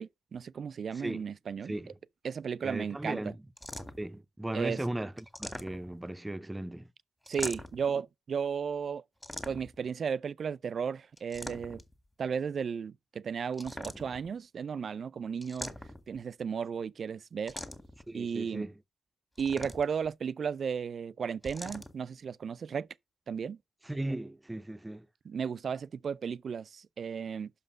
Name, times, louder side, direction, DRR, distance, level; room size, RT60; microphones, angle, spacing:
voice 1, 0.0-1.7 2.2-3.3 4.5-4.8 7.3-9.0 9.5-11.8 12.2-15.7 16.1-17.6 18.1-18.7 19.4-22.9 23.3-23.6 25.2-27.5, right 6 dB, 65° right, 0.4 m, -34 dB
voice 2, 2.6-3.4 4.0-6.9 18.1-18.7 23.8-25.1, right 1 dB, 15° right, 0.6 m, -37 dB
sound 1, 3.6-4.2 5.2-6.1 7.3-7.9 9.2-9.9 11.2-11.9 13.5-14.3 15.4-16.2 17.5-18.0 19.4-20.1 21.4-21.9, left 1 dB, 15° left, 1.8 m, -42 dB
5.9 x 5.5 x 6.3 m
supercardioid pair, 50°, 0 cm